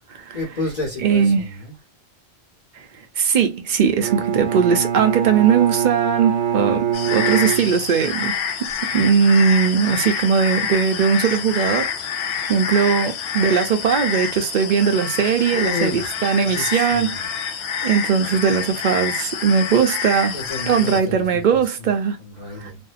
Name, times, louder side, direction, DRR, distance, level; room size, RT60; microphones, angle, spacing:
voice 1, 0.3-1.7 15.5-16.1 16.4-17.3 20.3-21.6 22.2-22.8, left 3 dB, 45° left, 1.1 m, -30 dB
voice 2, 1.0-1.5 3.2-11.9 12.5-17.2 17.8-20.4 20.7-22.2 22.6-22.7, right 7 dB, 55° right, 0.6 m, -19 dB
Bowed string instrument, 4.0-8.2, right 8 dB, 85° right, 0.9 m, -24 dB
sound 1, 6.9-21.0, left 7 dB, 75° left, 0.8 m, -27 dB
2.6 x 2.1 x 2.4 m
omnidirectional pair, 1.1 m